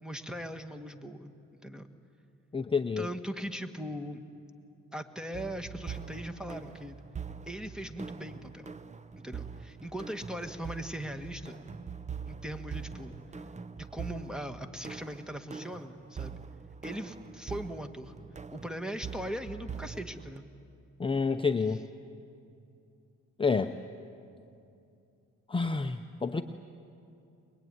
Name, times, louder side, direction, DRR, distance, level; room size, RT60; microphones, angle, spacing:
voice 1, 0.0-1.9 3.0-4.2 4.9-7.0 7.5-8.7 9.2-11.6 12.3-13.1 13.8-16.4 16.8-18.1 18.5-20.5, equal, ahead, 7 dB, 1.5 m, -40 dB
voice 2, 2.5-3.1 21.0-21.8 23.4-23.7 25.5-26.4, left 4 dB, 15° left, 6 dB, 0.8 m, -28 dB
sound 1, 5.3-20.4, right 6 dB, 25° right, 0.7 m, -43 dB
23.0 x 21.5 x 9.6 m, 2.6 s
cardioid pair, 90°, 30 cm